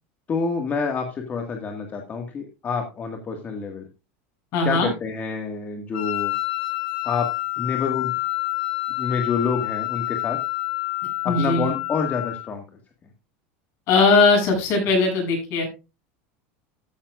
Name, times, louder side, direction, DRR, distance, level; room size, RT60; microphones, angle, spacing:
voice 1, 0.3-3.9 4.6-6.3 7.0-7.3 7.6-8.2 9.0-10.4 11.2-12.6, left 5 dB, 25° left, 4 dB, 1.8 m, -27 dB
voice 2, 4.5-4.9 11.2-11.7 13.9-15.7, left 3 dB, 50° left, 2 dB, 7.6 m, -19 dB
Wind instrument woodwind instrument, 5.9-12.5, left 23 dB, 80° left, 2.8 m, -28 dB
14.5 x 10.0 x 2.4 m, 0.28 s
supercardioid pair, 140°, 6 cm